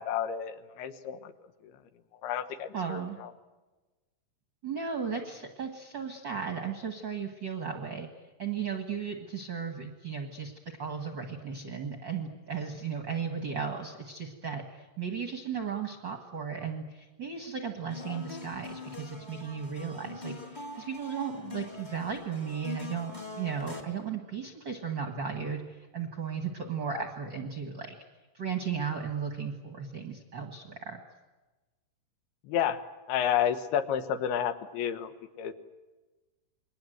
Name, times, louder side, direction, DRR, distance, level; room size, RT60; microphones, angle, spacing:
voice 1, 0.0-1.3 2.2-3.3 26.9-27.0 32.5-32.8 33.1-35.1 35.4-35.5, left 9 dB, 80° left, 10 dB, 3.1 m, -30 dB
voice 2, 2.7-3.2 4.6-8.1 8.4-10.5 10.8-27.9 28.3-31.0, right 6 dB, 45° right, 4 dB, 1.5 m, -35 dB
sound 1, 17.9-23.8, left 3 dB, 15° left, 1.7 m, -43 dB
28.0 x 21.5 x 7.9 m, 1.2 s
omnidirectional pair, 4.5 m